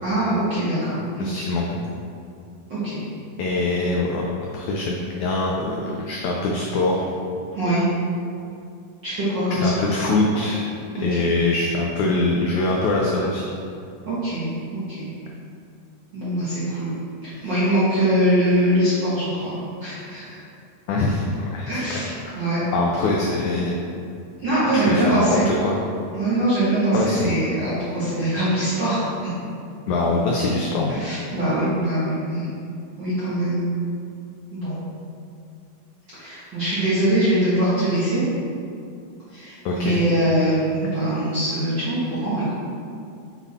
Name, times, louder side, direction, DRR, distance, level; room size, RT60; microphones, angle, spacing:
voice 1, 0.0-1.5 2.7-3.0 7.5-7.8 9.0-9.9 10.9-11.3 14.1-15.1 16.1-16.9 17.2-19.5 19.8-20.4 21.7-22.6 24.4-25.5 26.1-29.3 30.9-32.4 33.0-33.6 34.5-34.8 36.1-38.2 39.3-42.5, right 1 dB, 55° right, -12 dB, 1.2 m, -23 dB
voice 2, 1.2-1.8 3.4-4.2 4.5-7.1 9.5-10.6 11.0-13.4 20.9-22.3 22.7-23.8 24.9-25.8 26.9-27.3 29.9-31.0 39.7-40.0, left 2 dB, 85° left, -2 dB, 1.6 m, -23 dB
6.9 x 4.1 x 4.1 m, 2.5 s
omnidirectional pair, 4.1 m